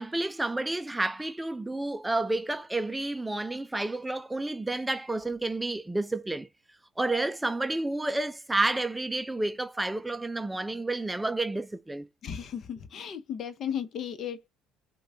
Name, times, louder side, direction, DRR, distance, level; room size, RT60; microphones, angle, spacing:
voice 1, 0.0-6.5 7.0-12.1, right 2 dB, 10° right, 0.4 m, -30 dB
voice 2, 12.2-14.5, left 8 dB, 55° left, 0.8 m, -35 dB
5.2 x 2.3 x 3.7 m
hypercardioid pair, 60°, 0 cm